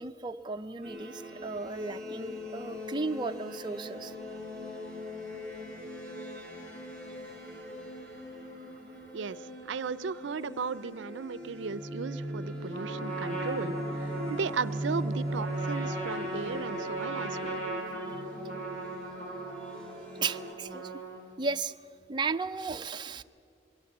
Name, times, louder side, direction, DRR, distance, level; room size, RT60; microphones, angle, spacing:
voice 1, 0.0-4.1 6.3-6.4 18.0-18.2 20.2-20.9 21.4-21.7 22.1-23.2, right 4 dB, 25° right, 6 dB, 0.4 m, -35 dB
sound 1, 0.8-20.5, equal, 5° left, 5.3 m, -39 dB
voice 2, 9.7-17.6, right 5 dB, 80° right, 18 dB, 0.5 m, -36 dB
Trumpet, 12.7-21.4, right 2 dB, 45° left, 5.5 m, -38 dB
22.5 x 17.0 x 8.5 m, 2.3 s
head